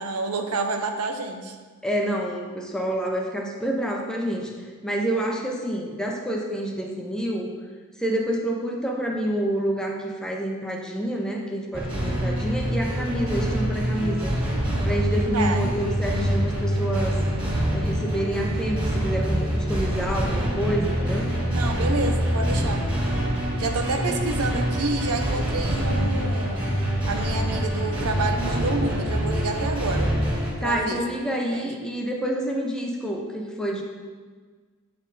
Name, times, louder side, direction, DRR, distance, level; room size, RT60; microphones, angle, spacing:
voice 1, 0.0-1.6 15.3-15.7 21.5-22.9 23.6-26.6 27.1-30.1 30.6-31.0 31.5-31.7, right 3 dB, 90° right, 5 dB, 0.7 m, -29 dB
voice 2, 1.8-4.5 4.8-7.5 8.0-14.4 14.9-17.2 17.7-21.3 22.6-22.7 30.6-33.8, right 1 dB, 5° left, 0 dB, 0.7 m, -28 dB
sound 1, 11.7-30.5, equal, 25° right, 2.0 m, -25 dB
8.6 x 4.3 x 4.0 m, 1.5 s
head